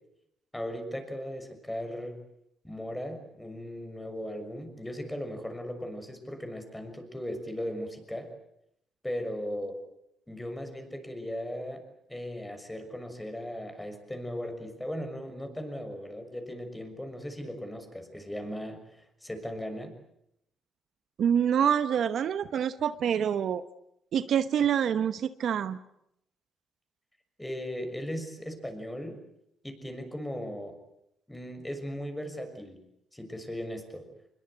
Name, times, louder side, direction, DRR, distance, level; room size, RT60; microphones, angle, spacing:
voice 1, 0.5-2.2 2.6-8.3 9.0-9.8 10.3-11.8 12.1-19.9 27.4-29.2 29.6-30.8 31.3-32.8 33.1-34.1, equal, 10° left, 6 dB, 6.3 m, -37 dB
voice 2, 21.2-23.6 24.1-25.8, right 8 dB, 65° right, 13 dB, 1.0 m, -26 dB
25.0 x 22.0 x 8.1 m, 0.78 s
cardioid pair, 90°, 0 cm